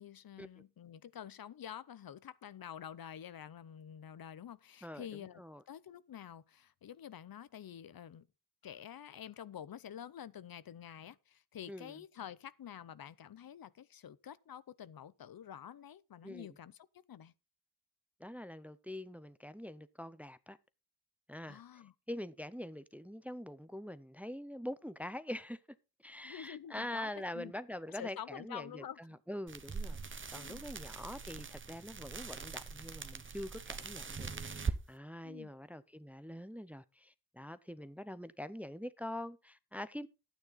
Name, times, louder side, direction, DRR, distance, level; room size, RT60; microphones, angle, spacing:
voice 1, 0.0-8.3 8.6-17.3 21.5-21.9 26.2-27.5 27.9-29.2 30.3-30.6 35.2-35.5, left 9 dB, 70° left, 0.6 m, -48 dB
voice 2, 18.2-20.6 21.3-21.6 22.1-25.6 26.0-40.1, left 1 dB, 5° right, 0.5 m, -44 dB
sound 1, 29.5-34.8, right 5 dB, 30° right, 0.8 m, -42 dB
12.0 x 9.1 x 4.0 m
wide cardioid pair, 160°, 37 cm